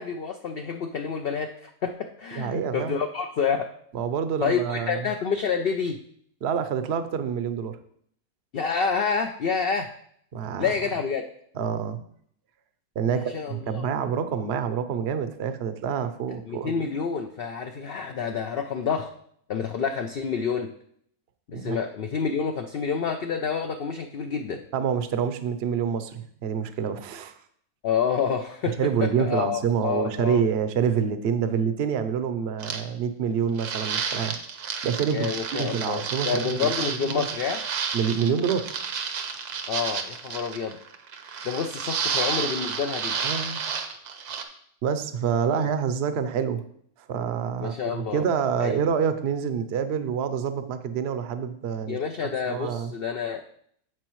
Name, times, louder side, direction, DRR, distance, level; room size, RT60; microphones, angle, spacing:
voice 1, 0.0-3.7 4.4-6.0 8.5-9.9 10.6-11.2 13.1-13.8 16.5-19.1 19.5-20.7 21.5-24.6 27.8-30.4 35.1-37.6 39.7-40.8 41.4-43.2 45.5-45.7 47.6-48.2 48.6-48.8 51.9-53.6, left 6 dB, 65° left, 5 dB, 0.5 m, -28 dB
voice 2, 2.3-3.0 3.9-5.1 6.4-7.8 10.3-10.7 11.5-12.0 13.0-16.9 21.5-21.8 24.7-27.3 28.8-34.4 34.8-37.3 37.9-38.7 43.2-43.6 44.8-46.6 47.1-52.0 52.5-52.9, right 7 dB, 55° right, 10 dB, 0.8 m, -27 dB
sound 1, 32.6-32.8 33.6-44.4, right 6 dB, 75° right, 1.4 m, -31 dB
9.3 x 7.6 x 3.1 m, 0.66 s
omnidirectional pair, 1.6 m